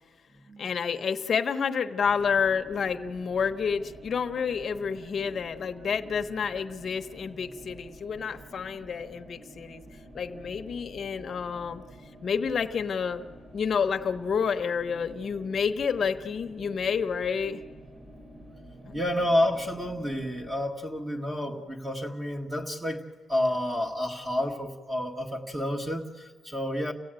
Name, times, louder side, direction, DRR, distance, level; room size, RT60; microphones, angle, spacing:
voice 1, 0.6-9.9 10.1-11.8 12.2-13.3 13.5-17.6 18.8-19.0, left 6 dB, 40° left, 7 dB, 1.0 m, -29 dB
sound 1, 2.0-20.6, right 1 dB, 40° right, 5.2 m, -49 dB
voice 2, 18.9-23.0 23.3-26.9, left 1 dB, 15° right, 3 dB, 1.7 m, -29 dB
29.5 x 16.0 x 9.0 m, 1.6 s
cardioid pair, 170°, 0 cm